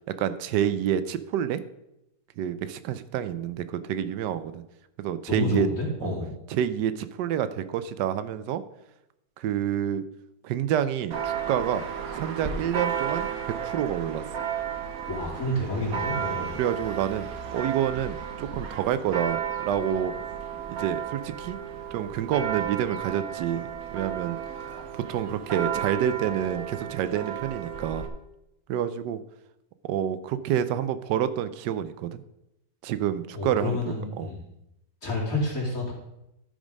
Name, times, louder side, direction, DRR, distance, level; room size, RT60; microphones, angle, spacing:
voice 1, 0.2-1.6 2.4-4.6 5.0-5.7 6.0-6.1 6.5-8.6 9.4-10.0 10.4-11.8 12.1-14.2 16.6-17.3 17.5-20.1 20.7-21.6 21.9-24.4 24.9-28.1 28.7-29.2 29.8-32.2 32.8-34.3, right 10 dB, 90° right, 13 dB, 1.2 m, -28 dB
voice 2, 5.3-6.3 15.1-16.6 33.3-34.4 35.0-35.9, left 2 dB, 55° left, -7 dB, 3.0 m, -29 dB
Church bell, 11.1-28.1, right 8 dB, 60° right, 1.4 m, -33 dB
12.5 x 5.1 x 5.2 m, 0.87 s
omnidirectional pair, 1.8 m